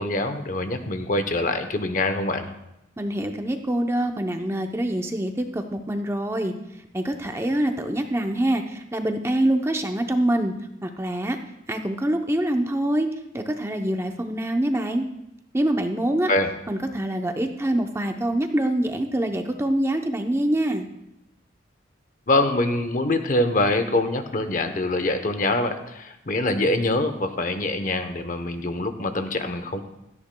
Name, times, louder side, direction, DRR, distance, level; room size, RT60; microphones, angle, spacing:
voice 1, 0.0-2.5 16.3-16.5 22.3-29.8, left 2 dB, 45° left, 8 dB, 0.8 m, -24 dB
voice 2, 3.0-6.5 6.9-10.5 10.8-11.4 11.7-13.1 13.3-15.0 15.5-16.3 16.7-20.9, right 1 dB, 15° right, 5 dB, 0.7 m, -25 dB
16.5 x 13.5 x 2.2 m, 0.87 s
head